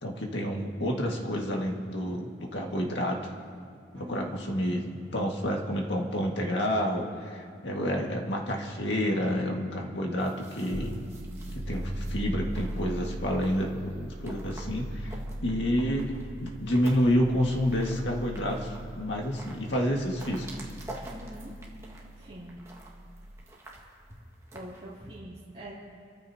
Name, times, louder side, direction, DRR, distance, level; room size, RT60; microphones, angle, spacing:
voice 1, 0.0-3.2 3.9-11.0 11.5-15.2 15.4-16.1 16.4-20.5, equal, 80° left, 0 dB, 1.9 m, -29 dB
voice 2, 3.9-4.4 21.1-21.5 22.2-22.6 24.5-25.7, equal, 30° right, -10 dB, 3.1 m, -43 dB
sound 1, 10.2-25.2, right 2 dB, 15° right, 1.8 m, -50 dB
sound 2, 10.7-23.4, right 1 dB, 65° right, 2.8 m, -39 dB
26.5 x 14.0 x 2.9 m, 2.3 s
head